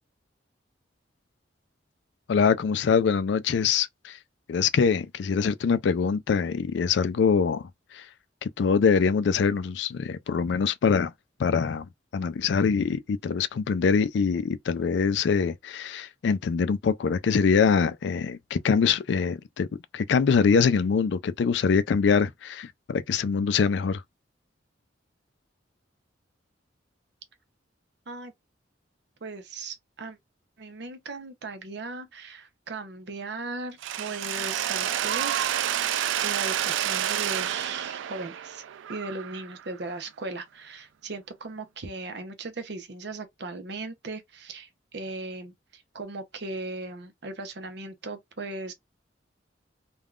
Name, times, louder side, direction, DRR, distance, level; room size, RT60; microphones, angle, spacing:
voice 1, 2.3-4.1 4.5-7.6 7.9-8.0 8.4-11.1 11.4-11.9 12.1-19.7 19.9-24.0, left 5 dB, 65° left, 0.3 m, -24 dB
voice 2, 29.2-30.2 30.6-35.5 35.9-38.6 38.9-48.7, right 3 dB, 65° right, 0.7 m, -38 dB
Mechanisms, 33.8-39.7, right 10 dB, 90° right, 0.3 m, -29 dB
3.5 x 2.3 x 2.4 m
head